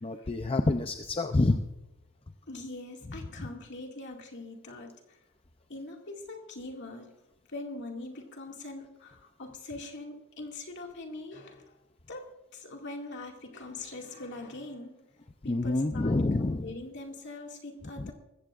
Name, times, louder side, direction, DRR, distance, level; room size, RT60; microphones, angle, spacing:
voice 1, 0.0-1.6 3.1-3.5 15.4-16.7 18.0-18.1, left 2 dB, 25° left, 6 dB, 0.5 m, -28 dB
voice 2, 2.5-5.2 5.7-7.1 7.5-11.6 12.1-12.3 12.5-14.9 15.4-18.1, left 2 dB, 55° left, 1 dB, 2.2 m, -42 dB
21.5 x 15.0 x 2.5 m, 0.94 s
head